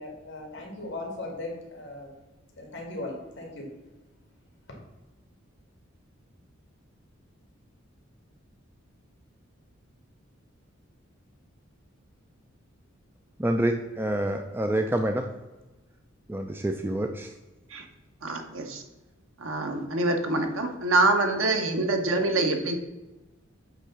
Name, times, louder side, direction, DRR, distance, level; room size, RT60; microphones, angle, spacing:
voice 1, 0.0-2.1 2.6-3.7, left 2 dB, 60° left, 0 dB, 2.1 m, -38 dB
voice 2, 13.4-15.3 16.3-17.3, right 1 dB, 10° right, 5 dB, 0.4 m, -27 dB
voice 3, 18.2-18.8 19.4-22.8, right 2 dB, 85° right, 5 dB, 1.1 m, -25 dB
8.3 x 3.6 x 5.8 m, 1.1 s
head